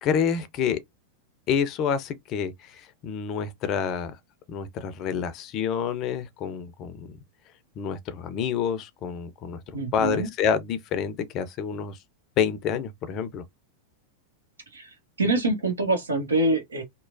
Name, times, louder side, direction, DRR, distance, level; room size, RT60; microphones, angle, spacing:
voice 1, 0.0-0.8 1.5-4.2 4.5-7.1 7.8-9.6 9.9-12.0 12.4-13.4, left 7 dB, 35° left, 0.5 m, -28 dB
voice 2, 9.7-10.3 14.7-14.9 15.2-16.8, right 2 dB, 75° right, 1.0 m, -25 dB
3.0 x 2.0 x 2.5 m
figure-of-eight pair, 90°, 0 cm